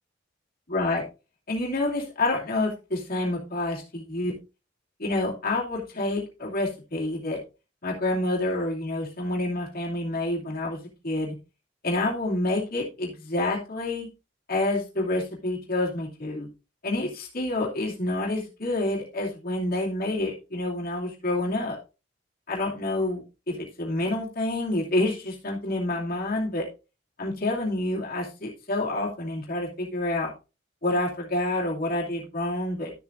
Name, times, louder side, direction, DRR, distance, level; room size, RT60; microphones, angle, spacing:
voice 1, 0.7-1.0 1.5-4.3 5.0-7.4 7.8-10.8 11.0-11.3 11.8-14.1 14.5-16.5 16.8-21.8 22.5-26.6 27.2-30.3 30.8-32.9, left 2 dB, 50° left, -2 dB, 2.6 m, -28 dB
12.5 x 6.9 x 2.6 m, 0.30 s
head